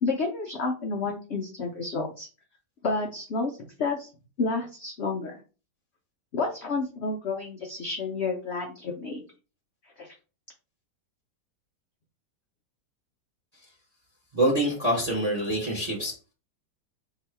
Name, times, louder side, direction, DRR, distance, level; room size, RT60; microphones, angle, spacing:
voice 1, 0.0-2.3 2.8-4.1 4.4-5.4 6.3-9.2 10.0-10.1, left 3 dB, 70° left, 2 dB, 0.6 m, -30 dB
voice 2, 14.3-16.2, right 1 dB, 25° right, -2 dB, 1.0 m, -25 dB
2.9 x 2.7 x 4.4 m, 0.35 s
omnidirectional pair, 1.9 m